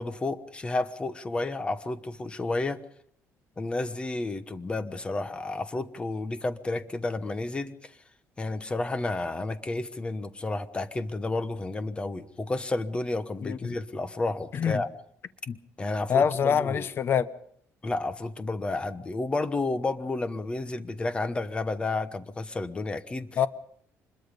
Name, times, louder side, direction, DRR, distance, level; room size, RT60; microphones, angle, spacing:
voice 1, 0.0-2.8 3.6-7.9 8.4-14.9 15.8-16.9 17.8-23.3, left 2 dB, 20° left, 1.1 m, -31 dB
voice 2, 13.4-13.8 14.5-14.8 15.5-15.6 16.1-17.3 23.4-23.5, left 7 dB, 40° left, 0.9 m, -25 dB
25.5 x 21.5 x 5.3 m
cardioid pair, 145°, 6 cm